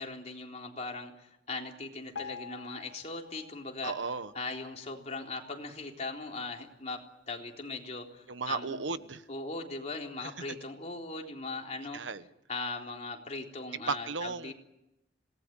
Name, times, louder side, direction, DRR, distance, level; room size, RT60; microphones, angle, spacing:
voice 1, 0.0-3.9 4.3-7.0 7.3-8.9 9.3-12.0 12.5-14.5, left 3 dB, 40° left, 1 dB, 3.8 m, -39 dB
Piano, 2.1-5.2 5.8-5.9 6.2-6.3 7.0-7.1 7.7-7.8, left 6 dB, 80° left, 1.0 m, -48 dB
voice 2, 3.8-4.3 8.3-9.2 10.2-10.3 11.9-12.2 13.9-14.5, right 4 dB, 85° right, 12 dB, 1.2 m, -35 dB
26.5 x 19.5 x 9.1 m, 0.91 s
head